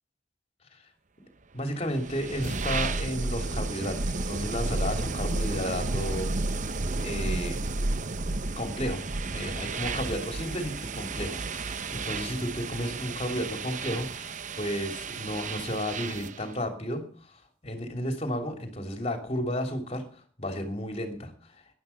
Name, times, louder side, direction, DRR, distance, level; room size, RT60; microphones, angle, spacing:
voice 1, 1.5-6.3 6.9-7.6 8.6-9.0 9.3-17.0 17.6-20.0 20.4-21.3, equal, 30° left, 5 dB, 3.1 m, -33 dB
sound 1, 1.8-16.4, right 3 dB, 40° right, 0.8 m, -32 dB
12.0 x 11.0 x 7.0 m, 0.42 s
head